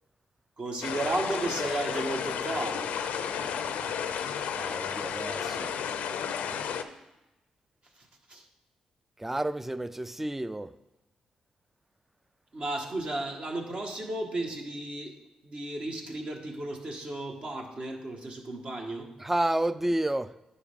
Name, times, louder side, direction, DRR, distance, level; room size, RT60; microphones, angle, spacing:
voice 1, 0.6-2.9 8.0-8.5 12.5-15.1 15.4-19.1, right 2 dB, 50° right, 1.4 m, -34 dB
sound 1, 0.8-6.8, left 7 dB, 90° left, 0.5 m, -32 dB
voice 2, 4.5-5.7 9.2-10.7 19.2-20.3, right 1 dB, 10° right, 0.3 m, -30 dB
9.6 x 5.4 x 3.6 m
cardioid pair, 70°, 2 cm